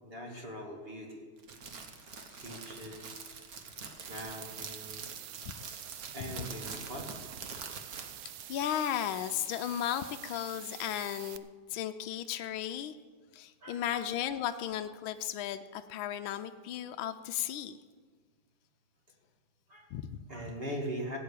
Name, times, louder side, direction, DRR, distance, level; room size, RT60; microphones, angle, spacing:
voice 1, 0.0-1.2 2.4-3.4 4.1-5.4 6.1-7.3 8.0-8.1 13.6-14.1 19.7-19.9 20.3-21.2, equal, 30° right, 0 dB, 2.6 m, -42 dB
Crackle, 1.4-8.5, right 5 dB, 50° right, 1.6 m, -45 dB
sound 1, 4.1-11.4, right 13 dB, 70° right, 1.2 m, -47 dB
voice 2, 8.5-12.9 13.3-17.8 19.9-20.2, left 11 dB, 80° left, 8 dB, 1.4 m, -35 dB
16.0 x 8.6 x 8.4 m, 1.5 s
omnidirectional pair, 2.2 m